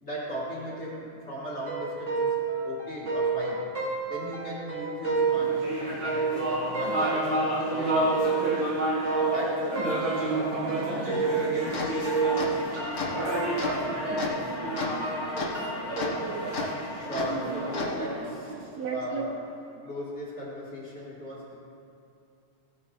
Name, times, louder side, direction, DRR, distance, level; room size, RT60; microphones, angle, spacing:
voice 1, 0.0-3.6 4.1-8.7 9.3-14.5 16.8-19.4 19.8-21.5, equal, 25° left, -7 dB, 2.4 m, -38 dB
sound 1, 1.6-11.8 12.0-15.9, right 5 dB, 25° right, 2.1 m, -31 dB
sound 2, 5.3-19.0, right 1 dB, 50° right, 3.5 m, -31 dB
sound 3, 11.6-17.9, left 3 dB, 50° left, 0.9 m, -34 dB
voice 2, 15.2-15.6 16.0-16.6 17.8-19.3, right 4 dB, 70° right, 1 dB, 1.9 m, -36 dB
17.0 x 8.7 x 3.9 m, 2.6 s
omnidirectional pair, 3.4 m